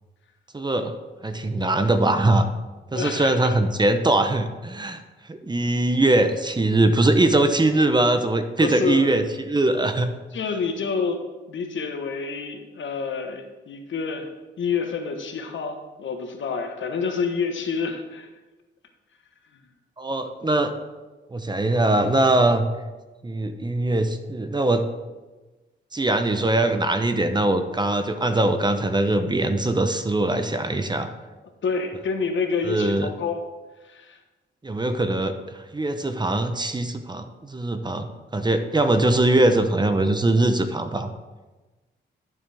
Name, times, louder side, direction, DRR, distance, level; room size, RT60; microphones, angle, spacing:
voice 1, 0.5-0.9 1.2-2.5 2.9-5.0 5.3-10.1 20.0-20.7 21.3-22.6 23.2-24.9 25.9-31.1 32.7-33.1 34.6-38.1 38.3-41.1, right 2 dB, 20° right, 8 dB, 0.8 m, -21 dB
voice 2, 2.9-3.5 8.6-9.2 10.3-11.2 11.5-14.3 14.6-18.3 19.5-19.6 20.4-20.6 31.6-33.4 33.8-34.2, left 5 dB, 70° left, 5 dB, 1.3 m, -28 dB
11.5 x 7.2 x 3.5 m, 1.2 s
cardioid pair, 80°, 20 cm